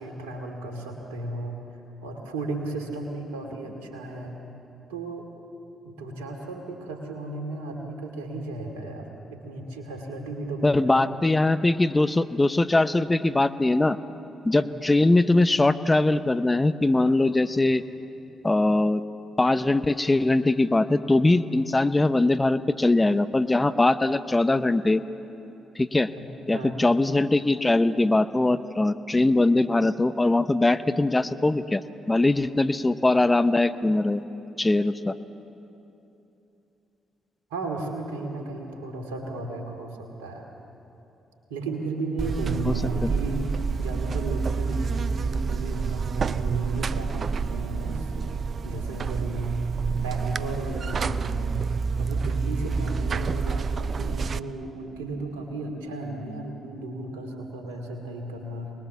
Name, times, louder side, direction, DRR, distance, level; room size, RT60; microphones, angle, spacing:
voice 1, 0.0-1.6 2.0-4.4 4.9-5.3 5.8-11.1 14.5-14.8 26.1-26.3 26.5-26.8 37.5-40.4 41.5-43.4 43.8-51.5 52.0-58.7, right 2 dB, 85° right, 2 dB, 2.4 m, -35 dB
voice 2, 10.6-14.0 14.4-17.8 18.4-19.0 19.4-25.0 25.8-26.1 26.5-31.8 32.1-34.2 34.6-35.2 42.7-42.8, left 2 dB, 20° left, 12 dB, 0.9 m, -21 dB
Buzz, 42.2-54.4, right 5 dB, 50° right, 0.5 m, -28 dB
24.5 x 20.5 x 7.2 m, 2.9 s
hypercardioid pair, 40°, 0 cm